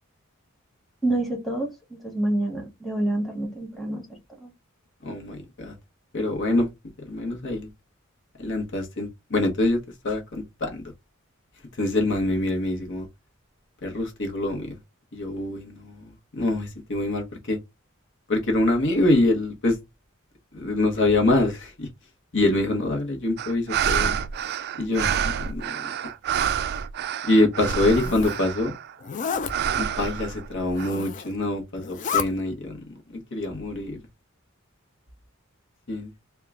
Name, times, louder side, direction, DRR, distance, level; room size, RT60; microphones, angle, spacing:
voice 1, 1.0-4.0 4.4-4.5, right 1 dB, ahead, 1.1 m, -27 dB
voice 2, 5.0-5.7 6.1-6.7 7.1-7.7 8.4-10.8 11.8-13.1 13.8-14.8 15.1-16.0 16.3-17.6 18.3-19.8 20.5-21.9 22.3-24.2 24.8-25.8 27.3-28.7 29.7-32.8 33.1-34.0 35.9-36.1, left 2 dB, 60° left, 1.0 m, -25 dB
sound 1, 23.4-28.9 29.5-30.9, right 8 dB, 50° right, 0.3 m, -28 dB
Zipper (clothing), 27.6-28.4 29.0-29.5 30.6-31.3 31.8-32.3, left 6 dB, 40° left, 0.4 m, -30 dB
3.6 x 2.3 x 3.6 m
head